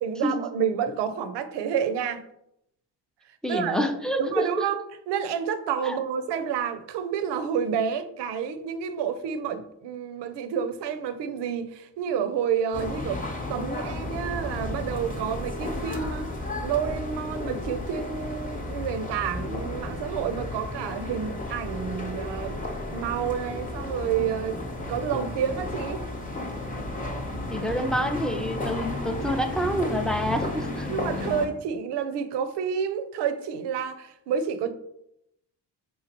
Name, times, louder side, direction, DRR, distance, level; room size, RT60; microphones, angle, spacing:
voice 1, 0.0-2.2 3.5-3.9 4.2-13.2 13.5-16.3 16.6-22.6 22.9-24.6 24.9-26.0 30.9-34.7, right 7 dB, 75° right, 0.5 m, -29 dB
voice 2, 3.4-4.7 5.8-6.0 27.5-30.9, equal, ahead, 0.3 m, -27 dB
sound 1, 12.7-31.5, left 2 dB, 20° left, 0.8 m, -33 dB
3.6 x 2.8 x 2.9 m
supercardioid pair, 60°, 42 cm